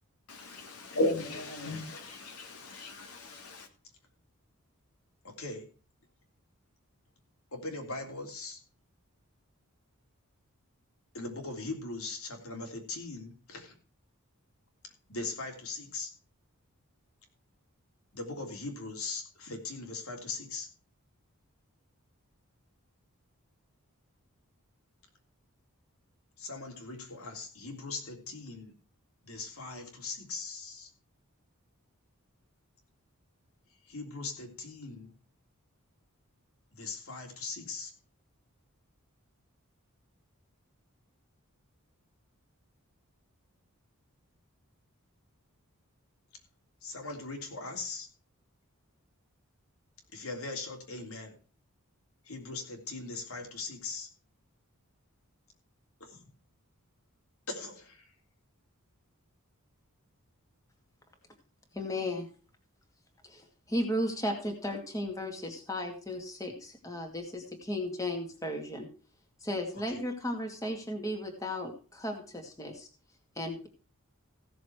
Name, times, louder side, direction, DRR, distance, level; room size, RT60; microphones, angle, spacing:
voice 1, 0.3-3.7, left 1 dB, 90° left, 2.7 m, -35 dB
voice 2, 5.2-5.7 7.5-8.6 11.1-13.7 15.1-16.1 18.1-20.7 26.4-28.7 29.2-30.9 33.9-35.1 36.7-37.9 46.8-48.1 50.1-51.4 52.2-54.1 56.0-56.2 57.5-58.1 69.9-70.0, left 3 dB, 75° left, 3.3 m, -40 dB
voice 3, 61.7-62.3 63.2-68.9 69.4-72.9 73.4-73.7, left 1 dB, 15° left, 2.2 m, -35 dB
16.0 x 7.0 x 4.7 m
head